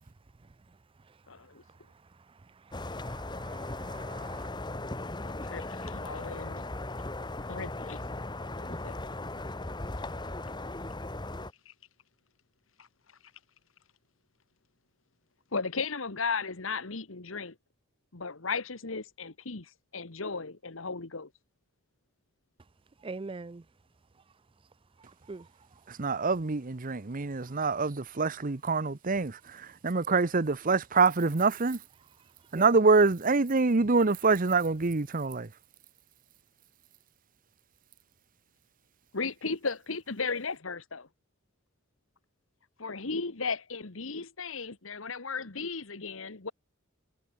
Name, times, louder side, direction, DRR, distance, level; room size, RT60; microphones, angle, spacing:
voice 1, 1.3-1.6 5.2-6.7 7.5-8.0 8.7-8.9 11.6-11.7 12.8-12.9 15.5-17.5 18.1-21.3 39.1-41.1 42.8-46.5, left 4 dB, 85° left, 1.6 m, -35 dB
sound 1, 2.7-11.5, left 2 dB, 20° left, 1.5 m, -37 dB
voice 2, 3.0-4.5 23.0-23.6 25.3-25.4 32.5-32.7, right 3 dB, 25° right, 0.5 m, -43 dB
voice 3, 25.9-31.8 32.5-35.5, right 4 dB, 45° right, 0.9 m, -25 dB
head